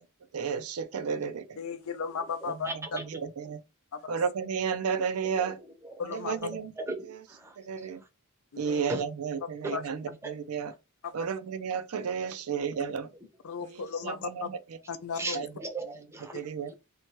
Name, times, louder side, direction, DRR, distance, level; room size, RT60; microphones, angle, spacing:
voice 1, 0.3-1.5 2.5-3.6 4.1-5.6 6.0-6.7 7.0-7.2 7.6-8.0 8.6-10.7 11.1-13.1 13.6-14.8 15.3-15.5 16.3-16.7, right 6 dB, 75° right, 0.4 m, -33 dB
voice 2, 1.6-2.7 3.9-4.1 6.0-6.3 8.5-8.8 9.7-9.8 11.0-11.1 13.4-14.5 14.9-15.4, left 5 dB, 65° left, 0.4 m, -35 dB
voice 3, 6.8-7.5 7.8-7.9 8.9-9.0 9.6-9.7 10.2-10.3 15.2-16.4, right 2 dB, 10° right, 0.6 m, -36 dB
2.8 x 2.2 x 2.9 m
head